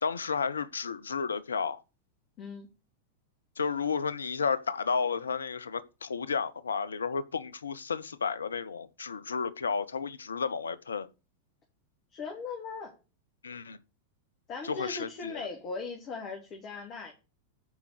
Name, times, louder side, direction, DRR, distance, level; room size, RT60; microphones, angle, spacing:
voice 1, 0.0-1.8 3.6-11.1 13.4-13.8 14.6-15.5, left 5 dB, 70° left, 0.7 m, -32 dB
voice 2, 12.1-12.9 14.5-17.1, left 4 dB, 35° left, 2.8 m, -39 dB
9.7 x 5.2 x 6.6 m
figure-of-eight pair, 90°, 0 cm